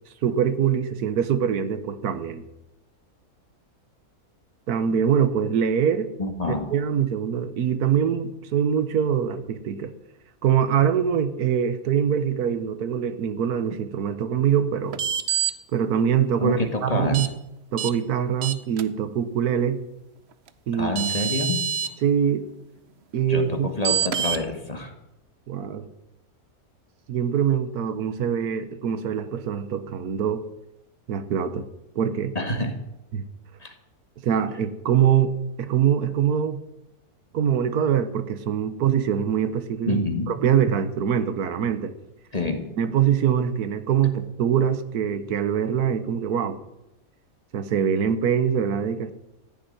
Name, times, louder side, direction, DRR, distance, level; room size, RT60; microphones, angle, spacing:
voice 1, 0.2-2.4 4.7-6.1 6.7-9.9 10.4-15.0 15.7-17.3 17.7-19.8 20.7-20.9 22.0-22.5 23.1-23.7 25.5-25.9 27.1-30.5 31.1-31.7 32.0-32.3 33.1-33.2 34.2-35.3 35.6-36.6 37.3-40.0 40.3-41.9 42.8-46.6 47.5-49.1, right 8 dB, 80° right, 12 dB, 1.5 m, -23 dB
voice 2, 6.2-6.7 16.4-17.2 20.7-21.6 23.3-24.9 32.4-32.8 33.6-33.7 39.9-40.3 42.3-42.7, left 1 dB, 25° left, 5 dB, 1.6 m, -27 dB
sound 1, 14.9-15.5 17.1-17.3 17.8-17.9 18.4-18.8 20.5-20.6 20.9-21.9 23.8-24.4, right 8 dB, 55° right, 0.9 m, -25 dB
14.5 x 7.2 x 9.8 m, 0.91 s
omnidirectional pair, 1.6 m